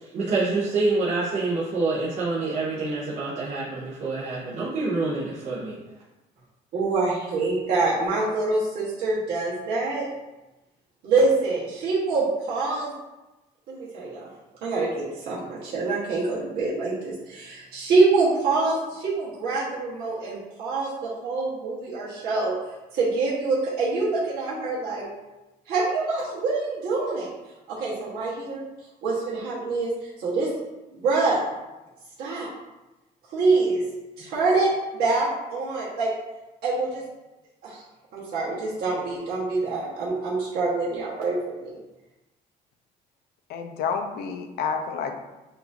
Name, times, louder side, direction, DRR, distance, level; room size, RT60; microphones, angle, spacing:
voice 1, 0.0-5.8, right 3 dB, 45° right, -7 dB, 0.8 m, -27 dB
voice 2, 6.7-10.1 11.0-12.9 13.7-14.2 14.6-14.9 15.1-20.9 21.2-22.5 22.9-25.0 25.7-27.3 27.8-28.6 29.0-29.9 30.2-30.5 31.0-31.4 32.2-32.5 33.3-33.8 34.2-34.7 35.0-36.1 36.6-37.0 37.6-37.8 38.1-41.8, right 3 dB, 70° right, -8 dB, 1.2 m, -25 dB
voice 3, 43.5-45.1, left 6 dB, 70° left, 6 dB, 0.5 m, -29 dB
5.7 x 2.6 x 2.6 m, 1.1 s
cardioid pair, 110°, 17 cm